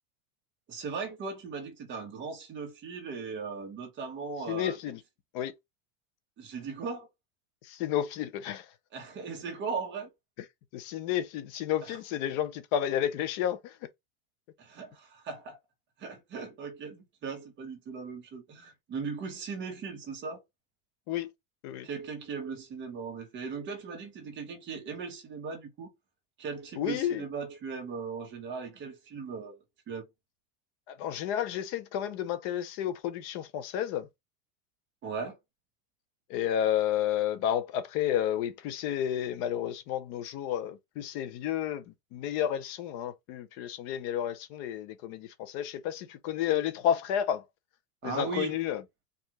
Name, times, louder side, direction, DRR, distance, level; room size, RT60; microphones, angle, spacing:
voice 1, 0.7-4.8 6.4-7.1 8.9-10.1 11.8-12.0 14.6-15.6 16.0-20.4 21.8-25.9 26.4-29.6 29.9-30.0 35.0-35.4 48.0-48.5, right 5 dB, 25° right, 1.2 m, -38 dB
voice 2, 4.5-5.0 5.3-5.5 7.7-8.7 10.7-13.7 21.1-21.3 21.6-21.9 26.8-27.2 30.9-34.1 36.3-41.8 42.1-47.4 48.0-48.8, left 10 dB, 30° left, 0.4 m, -31 dB
4.5 x 2.4 x 3.0 m
supercardioid pair, 160°, 48 cm